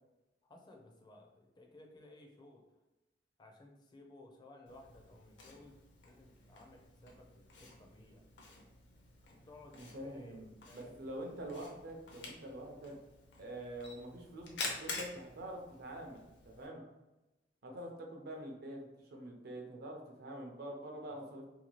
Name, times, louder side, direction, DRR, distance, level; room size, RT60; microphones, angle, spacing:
voice 1, 0.4-2.6 3.4-8.3 9.3-11.1 16.6-16.9 17.7-17.8 21.1-21.2, left 2 dB, 25° left, 2 dB, 0.4 m, -58 dB
Camera, 4.7-16.7, left 3 dB, 70° left, 0.7 m, -49 dB
voice 2, 9.7-13.0 13.4-16.8 17.6-21.5, right 1 dB, 60° right, 1 dB, 0.6 m, -46 dB
2.8 x 2.2 x 3.0 m, 1.0 s
head